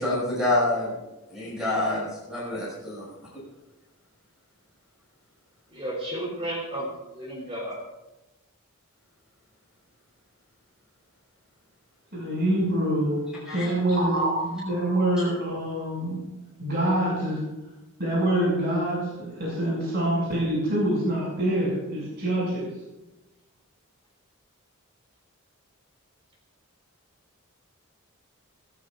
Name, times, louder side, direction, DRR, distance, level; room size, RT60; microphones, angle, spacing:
voice 1, 0.0-1.0 1.3-3.1 13.5-13.7, left 1 dB, 5° right, -7 dB, 5.9 m, -27 dB
voice 2, 5.7-7.8, right 1 dB, 25° right, -2 dB, 3.5 m, -33 dB
voice 3, 12.1-13.2 13.5-16.2 16.6-17.4 18.0-22.7, right 1 dB, 50° right, -5 dB, 6.2 m, -25 dB
24.5 x 14.5 x 2.5 m, 1.0 s
head